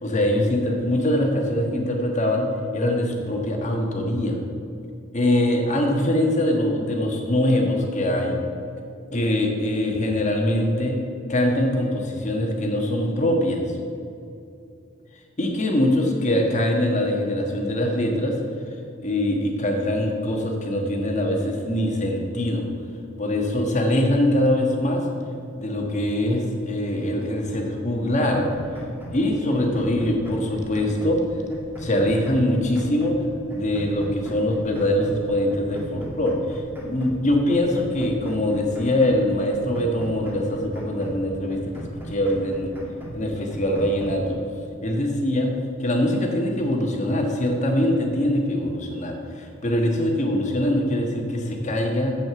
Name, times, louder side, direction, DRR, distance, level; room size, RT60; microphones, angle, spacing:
voice 1, 0.0-2.4 2.7-4.4 5.1-8.4 9.1-10.9 11.3-13.6 15.4-18.4 19.0-22.6 23.2-25.1 25.5-28.4 29.1-31.2 31.8-33.1 33.5-42.7 43.1-44.4 44.8-45.5 45.8-52.2, left 1 dB, 35° left, 1 dB, 1.4 m, -23 dB
sound 1, 28.3-29.2 29.5-31.2 31.5-33.2 33.5-35.2 35.5-37.2 37.5-39.2 39.5-41.2 41.5-43.2 43.5-44.3, right 1 dB, 10° right, 1.9 m, -38 dB
7.8 x 7.7 x 6.9 m, 2.6 s
head